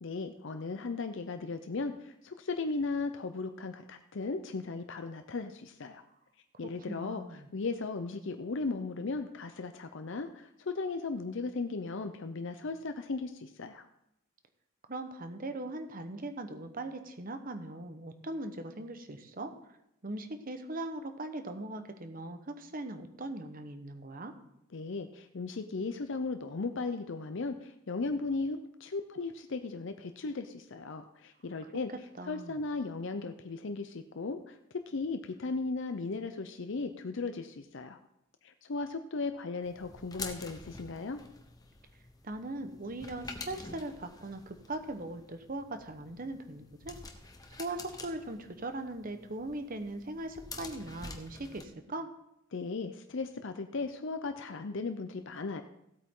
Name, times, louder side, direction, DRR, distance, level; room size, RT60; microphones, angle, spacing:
voice 1, 0.0-6.0 6.6-13.9 24.7-31.9 32.3-34.6 34.9-38.0 38.4-41.2 52.5-55.6, left 3 dB, 60° left, 8 dB, 0.6 m, -36 dB
voice 2, 6.9-7.5 14.9-19.5 20.0-24.3 31.6-31.7 32.2-32.6 42.2-47.0 47.6-52.1, right 2 dB, 40° right, 8 dB, 1.0 m, -40 dB
sound 1, 39.6-51.6, left 3 dB, 15° left, 1.0 m, -48 dB
16.5 x 8.4 x 3.8 m, 0.82 s
head